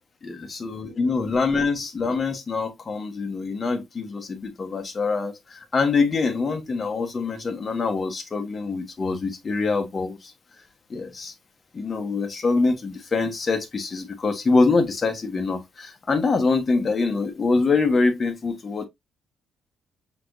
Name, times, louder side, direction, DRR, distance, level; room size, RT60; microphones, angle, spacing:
voice 1, 0.2-10.3 10.9-11.3 11.7-18.9, left 4 dB, 35° left, 1.2 m, -24 dB
5.8 x 3.0 x 2.6 m
cardioid pair, 90°, 0 cm